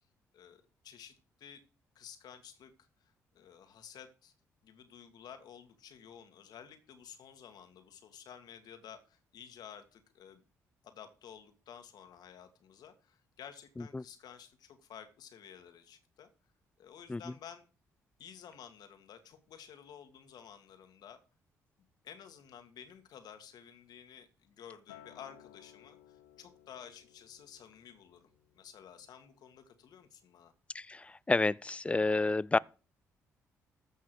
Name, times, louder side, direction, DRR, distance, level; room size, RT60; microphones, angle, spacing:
voice 1, 0.3-1.6 2.0-4.3 4.6-10.4 10.8-16.3 16.8-17.7 18.2-21.2 22.0-30.5, left 8 dB, 70° left, 2.0 m, -53 dB
Acoustic guitar, 24.9-29.3 29.7-30.1, left 12 dB, 90° left, 0.8 m, -59 dB
voice 2, 30.7-32.6, left 3 dB, 15° left, 0.5 m, -30 dB
15.0 x 5.6 x 6.2 m
hypercardioid pair, 50°, 7 cm